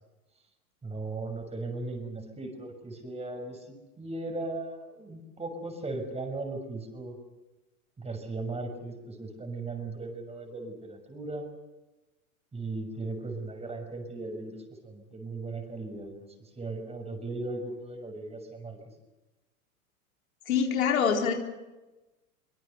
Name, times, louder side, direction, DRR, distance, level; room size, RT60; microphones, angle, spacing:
voice 1, 0.8-7.2 8.0-11.4 12.5-18.8, right 2 dB, 15° right, 5 dB, 6.3 m, -37 dB
voice 2, 20.5-21.3, left 7 dB, 70° left, 2 dB, 4.2 m, -25 dB
25.0 x 24.5 x 6.9 m, 1.1 s
figure-of-eight pair, 95°, 43 cm